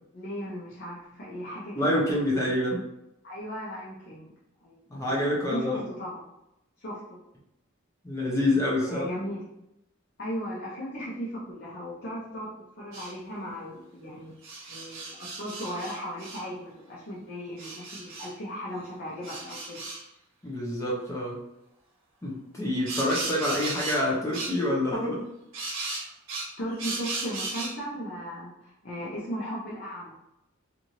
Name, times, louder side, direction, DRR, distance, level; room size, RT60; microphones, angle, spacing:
voice 1, 0.1-2.0 3.2-4.3 4.6-5.1 5.5-6.2 6.8-7.2 8.9-9.4 10.2-12.5 12.8-14.3 14.7-19.8 26.6-30.1, equal, 50° left, -8 dB, 0.7 m, -36 dB
voice 2, 1.7-2.8 4.9-5.8 8.0-9.1 20.4-21.4 22.2-25.2, left 1 dB, 15° left, -5 dB, 0.7 m, -27 dB
sound 1, 12.9-13.1 14.4-16.4 17.6-18.3 19.2-20.0 22.9-24.1 24.3-24.6 25.5-27.8, right 3 dB, 65° right, 0.9 m, -36 dB
2.7 x 2.6 x 3.0 m, 0.86 s
head